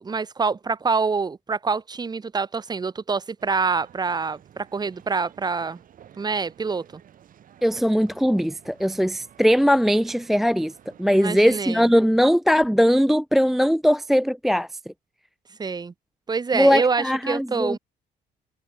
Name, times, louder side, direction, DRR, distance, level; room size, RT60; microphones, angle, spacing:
voice 1, 0.0-5.8 6.2-7.0 11.1-11.9 15.6-15.9 16.3-17.8, right 4 dB, 25° right, 1.5 m, -26 dB
sound 1, 3.4-12.2, right 10 dB, 55° right, 5.6 m, -52 dB
voice 2, 7.6-10.7 11.0-14.7 16.5-17.8, equal, ahead, 0.4 m, -20 dB
cardioid pair, 110°, 17 cm